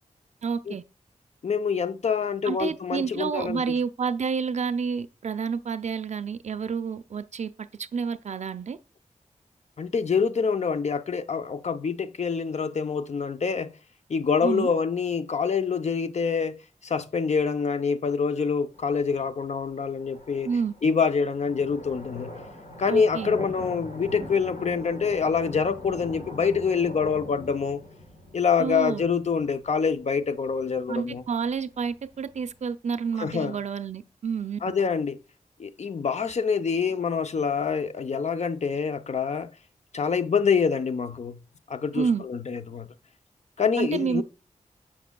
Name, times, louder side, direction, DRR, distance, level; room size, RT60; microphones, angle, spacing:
voice 1, 0.4-0.8 2.4-8.8 14.4-14.7 20.4-20.7 22.9-23.3 28.6-29.0 30.9-34.6 41.9-42.2 43.8-44.2, right 6 dB, 60° right, 0.5 m, -29 dB
voice 2, 1.4-3.6 9.8-13.8 14.1-16.6 16.8-20.5 20.8-22.3 22.8-27.8 28.3-31.2 33.2-33.6 34.6-35.2 35.6-39.5 39.9-41.4 41.7-42.9 43.6-44.2, left 5 dB, 55° left, 0.5 m, -26 dB
sound 1, 18.7-32.7, left 1 dB, 85° left, 1.5 m, -42 dB
7.2 x 6.0 x 2.2 m
wide cardioid pair, 65°, 13 cm